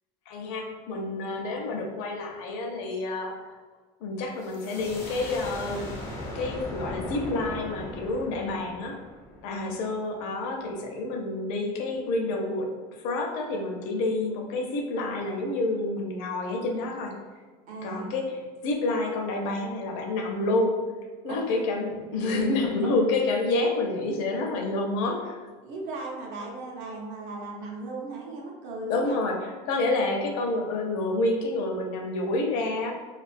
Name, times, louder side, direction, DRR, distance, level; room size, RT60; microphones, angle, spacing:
voice 1, 0.3-3.6 4.0-5.9 6.3-9.0 9.4-12.7 13.0-17.1 17.8-20.7 21.2-25.4 28.9-32.9, left 2 dB, 70° left, 1 dB, 0.5 m, -28 dB
sound 1, 4.4-9.9, left 1 dB, 15° left, 0.3 m, -38 dB
voice 2, 17.7-18.1 21.3-21.5 22.8-22.9 25.6-29.2, right 2 dB, 50° right, -1 dB, 0.6 m, -37 dB
2.3 x 2.2 x 2.5 m, 1.4 s
cardioid pair, 180°, 17 cm